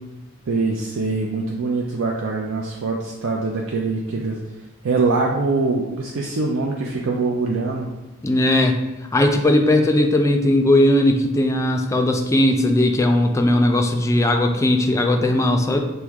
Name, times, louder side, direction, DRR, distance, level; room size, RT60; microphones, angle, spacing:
voice 1, 0.5-4.4 4.8-7.9, right 3 dB, 75° right, -1 dB, 0.5 m, -23 dB
voice 2, 8.2-8.7 9.1-15.8, left 1 dB, 15° left, 4 dB, 0.4 m, -18 dB
6.1 x 2.1 x 3.4 m, 1.1 s
head